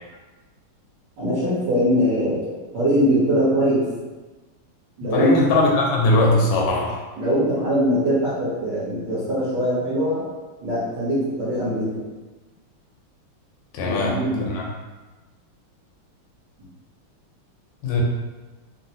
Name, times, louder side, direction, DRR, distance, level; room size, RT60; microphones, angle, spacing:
voice 1, 1.2-3.9 5.0-5.3 7.2-10.2 10.6-11.9 13.8-14.5, equal, 60° right, -11 dB, 1.5 m, -22 dB
voice 2, 5.1-7.0 13.7-14.7 17.8-18.0, left 2 dB, 80° left, -2 dB, 1.5 m, -20 dB
4.0 x 2.1 x 2.7 m, 1.2 s
omnidirectional pair, 2.4 m